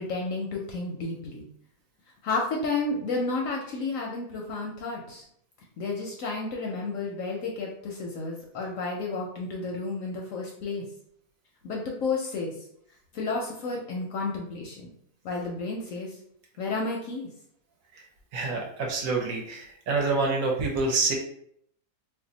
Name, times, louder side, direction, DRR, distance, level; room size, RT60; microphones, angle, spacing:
voice 1, 0.0-1.5 2.2-5.2 5.8-10.8 11.6-12.5 13.1-14.9 15.2-16.1 16.6-17.3, left 3 dB, 70° left, -1 dB, 0.8 m, -31 dB
voice 2, 18.3-21.1, right 3 dB, 65° right, 0 dB, 0.9 m, -27 dB
2.6 x 2.1 x 3.8 m, 0.69 s
omnidirectional pair, 1.7 m